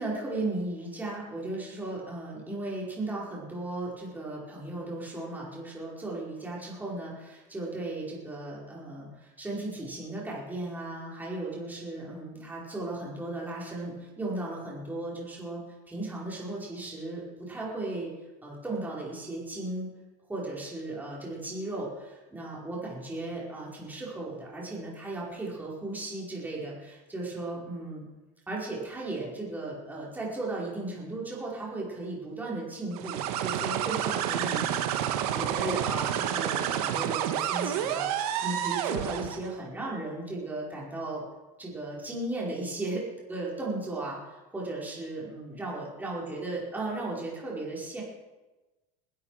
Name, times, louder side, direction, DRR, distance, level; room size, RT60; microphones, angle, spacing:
voice 1, 0.0-15.6 15.9-18.1 18.4-19.9 20.3-28.0 28.5-41.2 41.6-48.0, right 2 dB, 10° right, -4 dB, 5.0 m, -36 dB
sound 1, 32.9-39.5, right 10 dB, 80° right, 1.7 m, -29 dB
20.0 x 12.5 x 5.0 m, 1.1 s
supercardioid pair, 140°, 19 cm